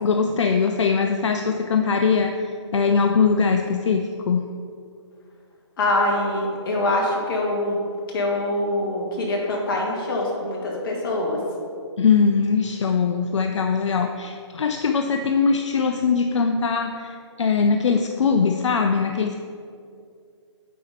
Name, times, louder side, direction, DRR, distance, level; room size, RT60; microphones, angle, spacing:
voice 1, 0.0-4.5 12.0-19.4, left 5 dB, 70° left, 5 dB, 0.5 m, -21 dB
voice 2, 5.8-7.8 8.1-11.4, left 1 dB, 45° left, -2 dB, 2.0 m, -24 dB
8.5 x 4.3 x 5.2 m, 2.4 s
hypercardioid pair, 145°, 16 cm